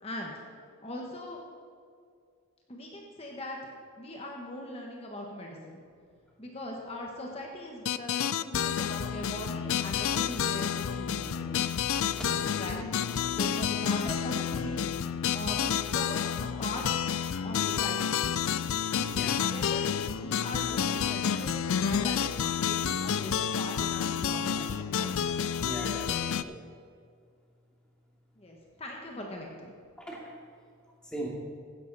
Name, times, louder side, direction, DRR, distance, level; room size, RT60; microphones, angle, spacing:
voice 1, 0.0-0.3 0.8-1.4 2.7-3.7 4.0-5.8 6.4-11.7 12.6-13.0 13.3-14.9 15.3-17.0 17.4-18.2 19.5-19.8 20.2-21.6 21.8-25.3 28.4-29.7, left 1 dB, 25° left, 0 dB, 1.3 m, -40 dB
sound 1, 7.9-26.4, left 8 dB, 70° left, 0.4 m, -30 dB
voice 2, 12.1-12.4 14.1-14.2 19.0-19.4 25.6-26.5 30.0-30.2 31.0-31.3, right 1 dB, 5° left, -4 dB, 2.4 m, -39 dB
16.0 x 10.5 x 4.1 m, 2.2 s
head